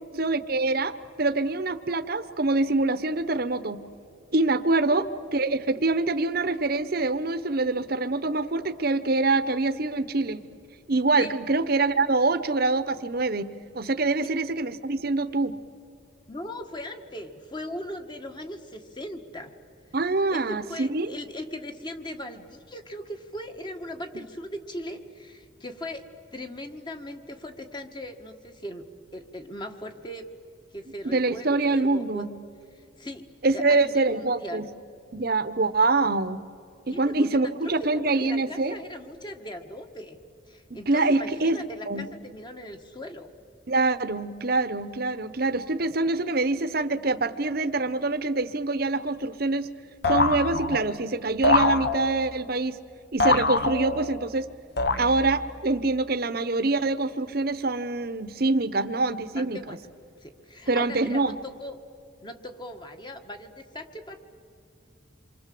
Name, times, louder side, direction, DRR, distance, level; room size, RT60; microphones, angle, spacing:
voice 1, 0.2-0.9 1.2-3.9 4.3-5.1 5.3-10.4 10.9-15.6 19.9-21.1 31.0-32.3 33.4-34.7 35.1-36.4 36.9-38.7 40.7-41.6 41.9-42.1 43.7-49.7 50.1-52.8 53.1-54.5 55.0-59.8 60.7-61.4, right 3 dB, 50° right, 11 dB, 1.0 m, -25 dB
voice 2, 4.8-5.2 11.2-11.3 14.2-14.3 16.3-19.5 20.3-28.8 29.1-30.3 30.7-32.3 32.8-33.3 33.5-34.6 36.9-37.3 37.6-40.2 40.5-43.3 59.3-59.8 60.2-61.8 62.2-64.2, left 1 dB, 20° left, 6 dB, 1.5 m, -39 dB
sound 1, 50.0-51.0 51.4-52.4 53.2-54.2 54.8-55.5, left 3 dB, 50° left, 1.1 m, -24 dB
27.5 x 24.5 x 7.7 m, 2.4 s
head